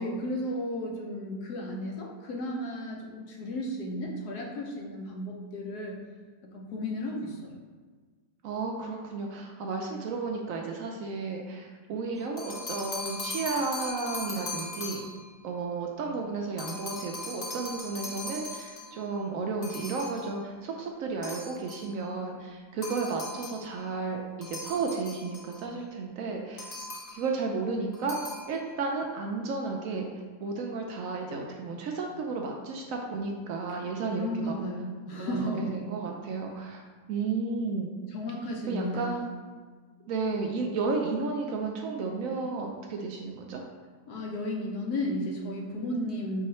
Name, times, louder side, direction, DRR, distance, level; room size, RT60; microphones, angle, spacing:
voice 1, 0.0-6.0 6.4-7.5 33.8-33.9 34.2-35.8 38.1-39.1 44.1-46.5, left 1 dB, 80° left, 0 dB, 1.3 m, -34 dB
voice 2, 8.4-15.0 15.4-26.7 27.1-28.2 28.5-30.1 30.4-34.5 35.2-36.8 37.1-37.9 38.7-39.3 40.1-43.6, right 4 dB, 70° right, 1 dB, 0.9 m, -33 dB
sound 1, 12.2-15.3 16.6-19.0 19.6-20.3 21.2-21.9 22.8-23.7 24.4-25.6 26.6-27.3 27.9-28.5, left 2 dB, 45° left, 0.5 m, -39 dB
4.6 x 2.4 x 4.2 m, 1.5 s
omnidirectional pair, 1.7 m